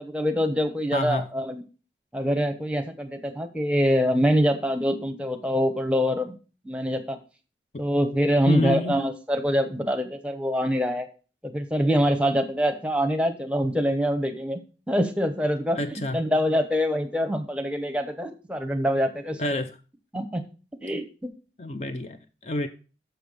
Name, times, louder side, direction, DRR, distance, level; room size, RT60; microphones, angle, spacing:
voice 1, 0.0-1.6 2.1-6.3 6.6-7.2 7.8-11.1 11.5-14.6 14.9-19.4 20.1-20.4 20.8-21.1, equal, 5° right, 0.9 m, -25 dB
voice 2, 0.9-1.3 8.5-9.0 15.7-16.2 19.4-19.7 21.6-22.7, left 2 dB, 35° left, 0.5 m, -28 dB
6.9 x 5.5 x 6.6 m
head